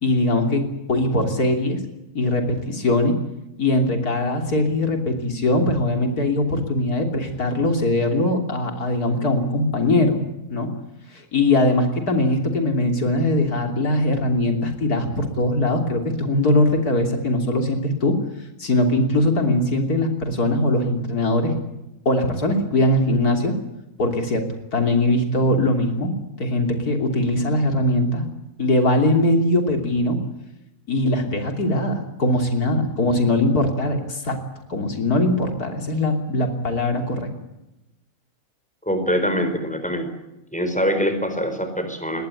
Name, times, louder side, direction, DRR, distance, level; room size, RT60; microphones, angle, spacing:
voice 1, 0.0-1.8 2.1-3.1 3.6-10.2 10.5-10.7 11.1-18.2 18.6-21.5 22.1-23.5 24.0-24.4 24.7-28.2 28.6-30.2 30.9-34.4 34.7-37.3, left 1 dB, 85° left, 5 dB, 3.7 m, -21 dB
voice 2, 38.8-40.1 40.5-42.3, equal, 5° left, 7 dB, 4.4 m, -24 dB
22.0 x 18.0 x 9.9 m, 0.94 s
omnidirectional pair, 1.6 m